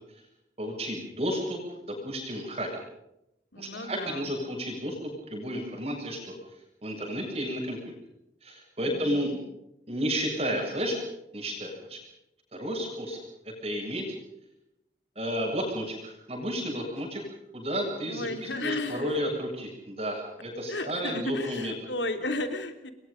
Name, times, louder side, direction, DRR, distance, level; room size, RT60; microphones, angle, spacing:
voice 1, 0.6-2.7 3.6-5.0 5.3-6.3 6.8-7.9 8.4-9.3 9.9-11.0 11.3-12.0 12.5-14.0 15.2-17.2 17.5-21.7, equal, 35° right, 0 dB, 7.5 m, -32 dB
voice 2, 3.5-4.3 8.8-9.3 18.0-19.2 20.7-22.9, left 2 dB, 90° left, 7 dB, 3.3 m, -34 dB
28.5 x 22.5 x 5.3 m, 0.85 s
head